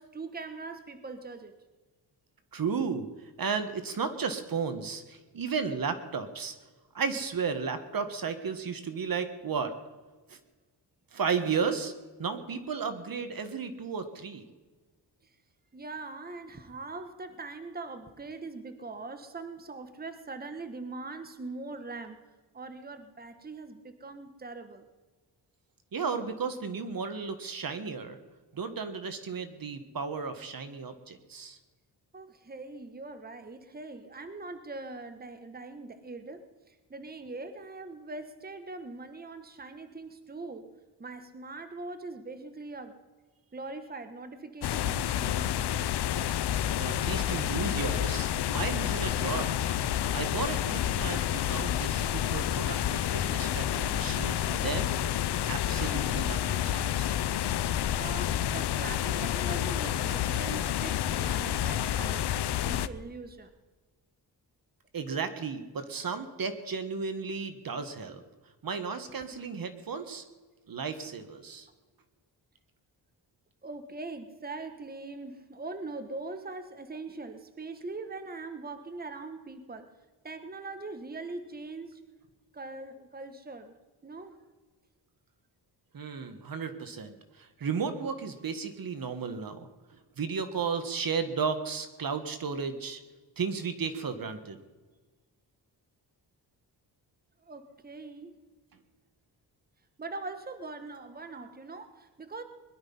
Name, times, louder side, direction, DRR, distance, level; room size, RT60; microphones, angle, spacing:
voice 1, 0.0-1.5 15.7-22.2 22.5-24.9 32.1-40.7 41.0-43.0 43.5-45.6 47.5-47.6 57.9-62.3 62.6-63.5 73.6-79.9 80.2-82.0 82.5-83.7 84.0-84.4 97.4-98.3 100.0-102.4, right 3 dB, 20° right, 8 dB, 1.4 m, -42 dB
voice 2, 2.5-3.1 3.4-6.6 6.9-9.7 10.3-10.4 11.1-11.9 12.2-14.4 25.9-28.2 28.5-31.6 46.8-49.5 50.1-54.9 55.5-57.1 64.9-68.2 68.6-70.2 70.7-71.7 85.9-89.7 90.2-93.0 93.4-94.6, right 5 dB, 55° right, 9 dB, 1.7 m, -34 dB
sound 1, 44.6-62.9, left 11 dB, 75° left, 0.7 m, -29 dB
21.5 x 11.5 x 5.7 m, 1.3 s
cardioid pair, 95°, 41 cm